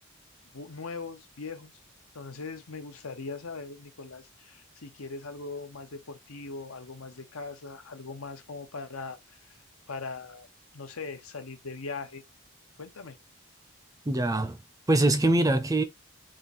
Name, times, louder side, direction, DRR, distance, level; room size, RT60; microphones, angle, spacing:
voice 1, 0.5-1.7 2.1-9.6 9.9-10.5 10.7-12.2 12.8-13.2, left 4 dB, 90° left, 0.9 m, -40 dB
voice 2, 14.1-14.6 14.9-15.8, right 2 dB, 15° right, 0.4 m, -23 dB
3.7 x 2.7 x 4.1 m
head